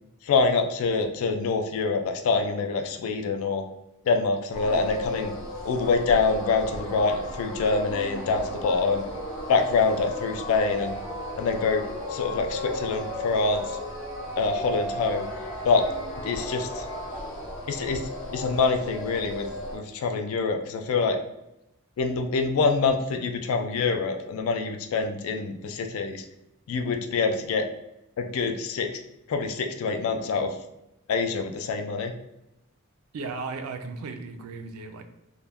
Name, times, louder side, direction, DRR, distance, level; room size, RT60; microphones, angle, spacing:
voice 1, 0.2-3.6 4.1-5.3 5.6-9.0 9.5-11.0 11.4-11.8 12.1-13.8 14.4-15.2 15.6-15.9 16.2-16.9 17.7-19.5 19.7-21.2 22.0-26.2 26.7-27.7 28.2-28.9 29.3-30.5 31.1-32.1, left 4 dB, 70° left, 5 dB, 0.3 m, -25 dB
sound 1, 4.5-19.8, left 1 dB, 55° left, 0.7 m, -34 dB
voice 2, 33.1-35.0, right 4 dB, 70° right, 7 dB, 0.3 m, -35 dB
2.2 x 2.1 x 3.4 m, 0.87 s
head